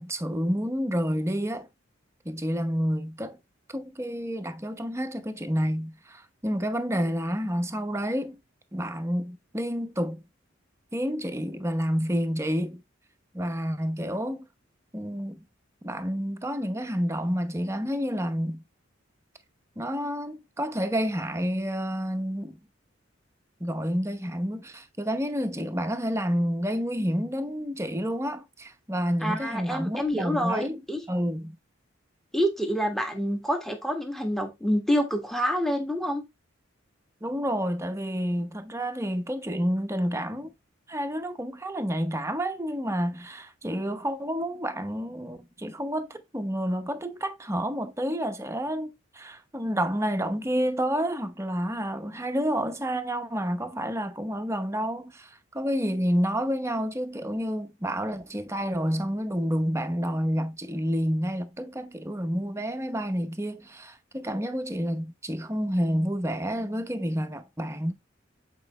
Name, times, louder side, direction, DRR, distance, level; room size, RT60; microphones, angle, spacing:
voice 1, 0.0-1.7 2.2-3.4 3.7-8.4 8.7-10.2 10.9-12.8 13.3-14.4 14.9-15.4 15.8-18.6 19.8-22.6 23.6-30.8 31.1-31.6 37.2-40.5 40.9-55.3 55.5-67.9, equal, 15° right, 0.8 m, -29 dB
voice 2, 29.2-31.0 32.3-36.2, equal, ahead, 1.4 m, -27 dB
7.9 x 4.5 x 3.1 m
head